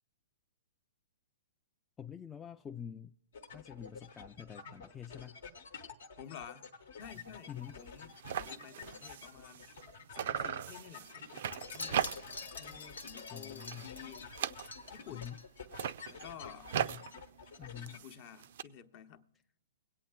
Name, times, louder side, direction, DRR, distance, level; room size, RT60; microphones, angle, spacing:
voice 1, 2.0-3.1 3.5-5.4 7.3-7.8 13.3-14.0 15.1-15.4 16.7-17.0 17.6-18.0, left 9 dB, 15° left, 0.3 m, -47 dB
sound 1, 3.3-18.0, left 5 dB, 70° left, 1.0 m, -50 dB
voice 2, 6.2-6.7 7.0-9.7 10.1-12.0 12.6-14.4 14.9-15.3 16.1-16.7 17.9-19.2, left 9 dB, 45° left, 0.7 m, -51 dB
sound 2, 7.0-7.3 7.6-7.7 7.9-9.9 10.1-12.5 12.9-13.2 13.5-15.1 15.6-18.6, right 9 dB, 60° right, 0.4 m, -39 dB
Wind chime, 11.4-15.9 16.2-16.5 16.8-16.9, left 3 dB, 90° left, 0.8 m, -47 dB
22.5 x 8.6 x 2.3 m
hypercardioid pair, 130°, 0 cm